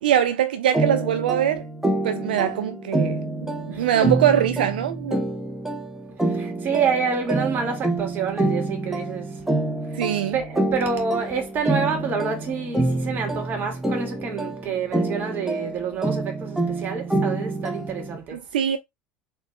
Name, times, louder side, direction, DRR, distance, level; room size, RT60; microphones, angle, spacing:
voice 1, 0.0-1.6 2.0-3.2 3.7-5.2 9.9-10.4 18.3-18.8, right 10 dB, 75° right, 0.4 m, -22 dB
sound 1, 0.7-18.2, right 2 dB, 5° right, 1.1 m, -27 dB
voice 2, 3.7-4.1 6.3-9.4 10.3-18.4, right 5 dB, 40° right, 1.9 m, -28 dB
4.4 x 3.0 x 3.1 m
hypercardioid pair, 75°, 5 cm